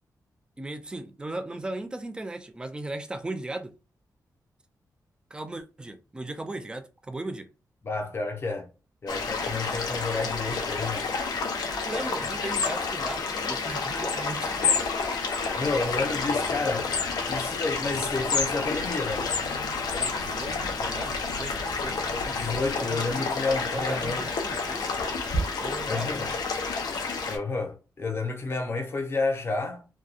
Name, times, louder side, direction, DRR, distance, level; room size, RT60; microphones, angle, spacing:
voice 1, 0.6-3.7 5.3-7.5 11.8-14.9 20.0-22.3 22.7-23.3 23.7-24.9 25.6-26.4, right 2 dB, 15° right, 0.3 m, -37 dB
voice 2, 7.8-8.7 9.0-11.1 15.6-16.9 17.3-19.3 22.3-24.3 25.9-26.3 27.3-29.9, left 3 dB, 40° left, 0.6 m, -30 dB
sound 1, 9.1-27.4, left 4 dB, 85° left, 0.5 m, -29 dB
sound 2, 15.8-22.7, equal, 80° right, 0.8 m, -44 dB
2.7 x 2.2 x 2.4 m
wide cardioid pair, 155°, 7 cm